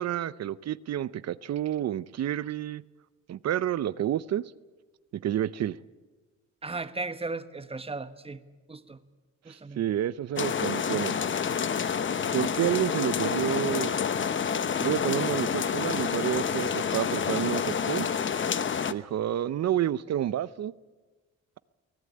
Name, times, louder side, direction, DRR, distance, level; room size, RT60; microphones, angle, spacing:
voice 1, 0.0-2.8 3.3-4.4 5.2-5.8 9.8-11.1 12.3-13.9 14.8-18.1 18.9-20.7, right 11 dB, 60° right, 17 dB, 0.7 m, -29 dB
voice 2, 6.6-8.4 8.7-9.0 9.4-9.8, right 3 dB, 20° right, 10 dB, 1.4 m, -36 dB
sound 1, 10.4-18.9, left 7 dB, 40° left, 1.0 m, -28 dB
24.0 x 17.0 x 8.6 m, 1.3 s
cardioid pair, 90°, 30 cm